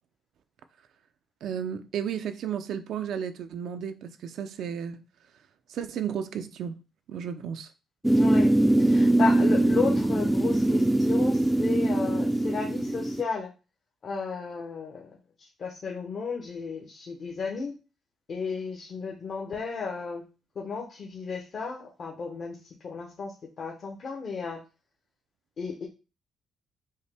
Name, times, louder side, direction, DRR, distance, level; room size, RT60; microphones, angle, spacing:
voice 1, 1.4-5.0 5.7-6.8 7.1-7.7, right 8 dB, 75° right, 0.4 m, -33 dB
sound 1, 8.0-13.2, right 1 dB, 5° right, 0.4 m, -22 dB
voice 2, 8.1-13.5 14.0-17.8 18.3-20.3 20.6-24.6 25.6-25.9, left 5 dB, 50° left, 0.8 m, -34 dB
5.4 x 2.2 x 3.4 m
cardioid pair, 90°, 0 cm